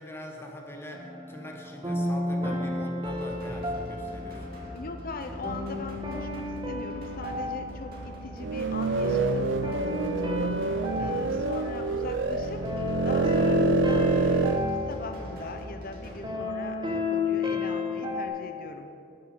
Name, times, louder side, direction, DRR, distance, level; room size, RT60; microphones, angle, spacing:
voice 1, 0.0-4.5 10.9-11.4, equal, 15° left, 1 dB, 1.2 m, -42 dB
sound 1, 0.9-18.3, left 3 dB, 25° right, 1.5 m, -33 dB
sound 2, 3.0-16.2, right 1 dB, 50° right, 2.1 m, -43 dB
voice 2, 4.7-10.6 11.0-18.9, left 3 dB, 50° left, 6 dB, 0.7 m, -40 dB
sound 3, 8.4-14.6, right 4 dB, 70° right, 0.6 m, -27 dB
12.5 x 6.9 x 6.6 m, 2.6 s
head